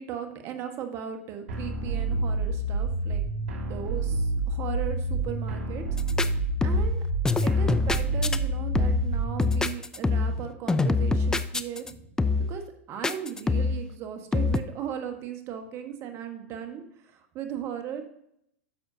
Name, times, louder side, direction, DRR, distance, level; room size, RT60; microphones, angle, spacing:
voice 1, 0.0-3.3 3.7-5.8 6.6-7.0 7.4-12.0 12.5-18.0, right 8 dB, 40° right, 6 dB, 1.4 m, -37 dB
sound 1, 1.5-9.5, right 2 dB, 65° right, 2.1 m, -28 dB
sound 2, 6.0-6.3 6.6-7.0 7.2-8.4 8.7-9.1 9.4-10.4 10.7-11.9 12.2-12.6 13.0-13.8 14.3-14.6, left 3 dB, 10° left, 0.4 m, -25 dB
10.0 x 6.9 x 2.8 m, 0.74 s
hypercardioid pair, 115°, 7 cm